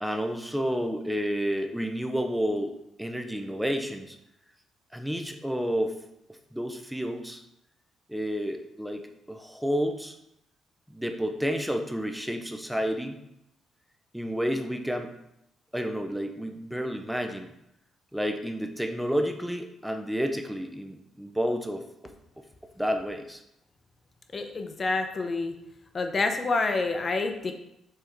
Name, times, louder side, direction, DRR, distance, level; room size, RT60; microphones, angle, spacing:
voice 1, 0.0-4.2 4.9-6.0 6.5-7.4 8.1-10.2 10.9-13.2 14.1-15.2 15.7-17.5 18.1-21.8 22.8-23.4, equal, ahead, 5 dB, 0.8 m, -30 dB
voice 2, 24.3-25.5 25.9-27.5, left 3 dB, 35° left, 6 dB, 0.9 m, -28 dB
6.7 x 3.6 x 4.6 m, 0.81 s
cardioid pair, 90°, 0 cm